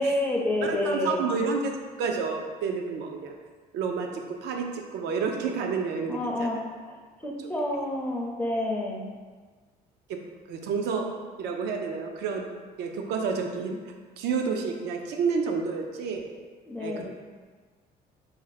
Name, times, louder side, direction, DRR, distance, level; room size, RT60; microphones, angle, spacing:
voice 1, 0.0-1.3 6.1-9.1 16.7-17.1, left 1 dB, 10° left, -1 dB, 0.4 m, -29 dB
voice 2, 0.6-1.7 2.0-3.4 3.7-6.5 10.1-10.2 10.5-12.5 12.8-13.8 14.2-16.3 16.8-17.1, right 5 dB, 80° right, 3 dB, 0.4 m, -30 dB
2.6 x 2.0 x 3.9 m, 1.4 s
cardioid pair, 110°, 17 cm